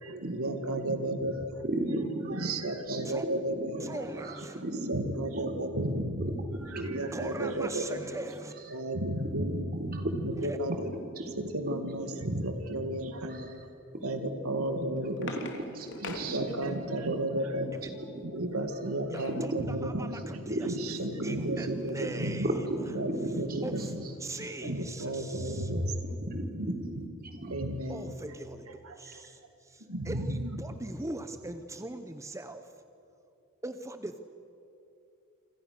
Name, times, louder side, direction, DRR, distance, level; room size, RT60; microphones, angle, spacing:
voice 1, 0.0-1.6 2.3-3.9 4.6-6.3 6.7-8.0 8.7-10.9 11.4-13.5 14.0-15.4 16.0-17.8 18.2-22.5 22.9-24.1 24.6-26.1 26.5-27.1 27.5-28.1 28.8-29.2 29.9-30.6, right 1 dB, 85° right, 7 dB, 2.1 m, -33 dB
voice 2, 1.6-2.4 2.9-3.8 4.2-4.9 6.2-6.3 6.7-7.0 7.3-7.4 7.9-8.0 9.3-10.2 11.2-11.4 11.7-11.8 13.3-13.5 14.1-14.2 15.8-16.4 17.6-17.7 18.4-18.5 19.5-19.6 20.0-20.1 20.5-20.9 21.4-21.7 22.0-22.1 22.4-23.3 26.2-27.5, right 1 dB, 45° right, 4 dB, 3.9 m, -35 dB
voice 3, 3.8-4.6 7.1-8.5 10.4-10.6 17.7-17.9 19.1-20.8 21.2-22.9 23.6-23.9 24.2-25.7 27.9-32.7 33.6-34.2, right 2 dB, 15° right, 8 dB, 0.8 m, -41 dB
sound 1, 14.6-17.1 18.6-19.5 20.0-20.1 20.3-20.6, left 3 dB, 60° left, 3.1 m, -43 dB
28.5 x 26.5 x 6.7 m, 3.0 s
head